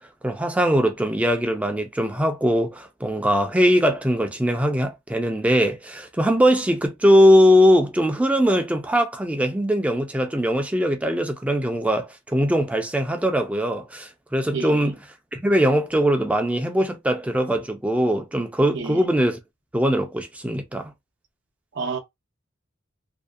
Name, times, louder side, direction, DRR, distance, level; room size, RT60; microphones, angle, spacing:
voice 1, 0.2-15.0 15.3-19.4 19.7-20.9, equal, 5° right, 0.3 m, -21 dB
voice 2, 14.5-14.9 18.7-19.0 21.7-22.0, right 4 dB, 65° right, 0.5 m, -29 dB
2.6 x 2.1 x 2.3 m
head